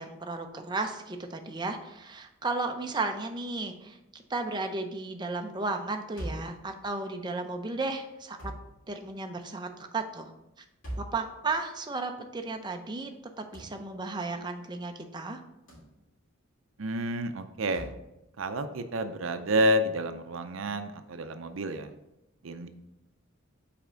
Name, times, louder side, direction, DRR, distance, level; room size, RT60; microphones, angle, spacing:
voice 1, 0.0-8.4 8.9-10.3 11.1-13.1 13.4-15.4, right 3 dB, 20° right, 5 dB, 0.5 m, -34 dB
sound 1, 6.2-6.6 8.4-8.7 10.8-11.2 13.5-13.8 15.7-15.9 17.7-18.0, right 1 dB, 60° left, 2.6 m, -39 dB
voice 2, 16.8-17.9 18.4-21.9 22.4-22.7, equal, 65° right, 9 dB, 0.5 m, -29 dB
5.8 x 4.2 x 5.0 m, 0.89 s
head